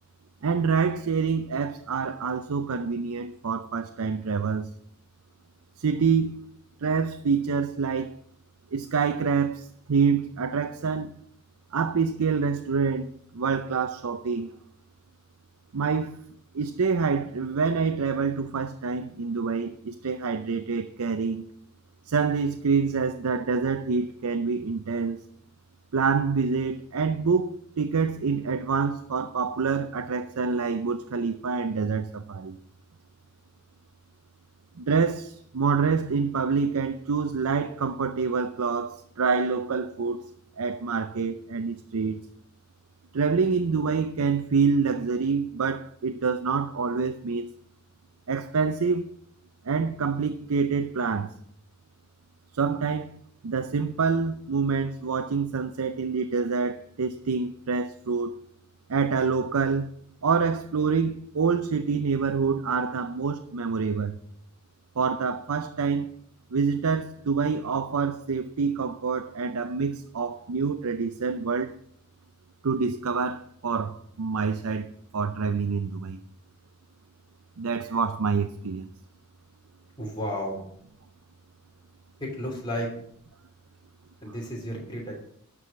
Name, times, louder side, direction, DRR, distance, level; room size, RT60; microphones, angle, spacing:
voice 1, 0.4-4.7 5.8-6.4 6.8-8.2 8.7-11.1 11.7-13.1 13.3-14.5 15.7-16.2 16.5-21.4 22.1-25.2 25.9-32.6 34.8-40.3 40.6-42.2 43.1-47.5 48.3-49.1 49.7-51.3 52.5-53.1 53.4-58.4 58.9-59.9 60.2-64.2 65.0-66.1 66.5-71.7 72.6-76.2 77.6-78.9, right 5 dB, 85° right, 0.6 m, -26 dB
voice 2, 80.0-80.6 82.2-82.9 84.2-85.2, equal, 20° left, 3.0 m, -32 dB
12.5 x 4.9 x 7.4 m
head